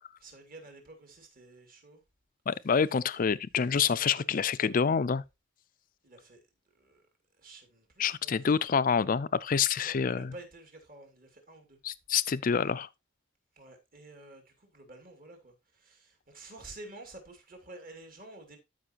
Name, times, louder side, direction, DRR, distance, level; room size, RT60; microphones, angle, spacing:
voice 1, 0.2-2.0 4.0-4.4 6.0-6.4 6.7-7.1 7.4-8.4 9.7-11.8 13.5-18.6, right 2 dB, 45° right, 2.5 m, -50 dB
voice 2, 2.5-5.2 8.0-10.3 11.8-12.9, left 6 dB, 40° left, 0.4 m, -27 dB
12.5 x 5.4 x 2.9 m
head